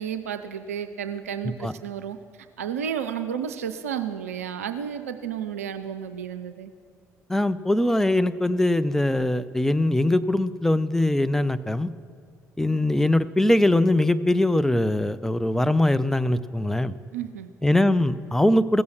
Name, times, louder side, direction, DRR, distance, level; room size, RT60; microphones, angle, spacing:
voice 1, 0.0-2.2 2.6-6.7 17.1-17.5, right 8 dB, 85° right, 9 dB, 0.4 m, -32 dB
voice 2, 7.3-11.9 12.6-16.9 17.6-18.8, left 1 dB, 5° left, 12 dB, 0.5 m, -22 dB
15.5 x 6.9 x 6.4 m, 2.1 s
hypercardioid pair, 50°, 8 cm